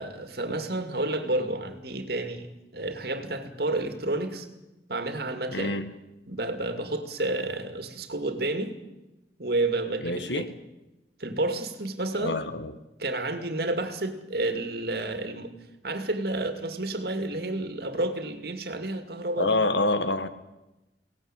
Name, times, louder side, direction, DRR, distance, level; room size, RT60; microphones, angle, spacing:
voice 1, 0.0-4.5 4.9-5.7 6.3-8.8 9.4-10.5 11.2-12.4 13.0-15.5 15.8-19.6, right 2 dB, 60° right, 8 dB, 2.4 m, -30 dB
voice 2, 5.5-5.9 10.0-10.5 12.2-12.7 19.4-20.3, left 2 dB, 75° left, 11 dB, 1.7 m, -26 dB
22.5 x 18.0 x 9.0 m, 0.99 s
head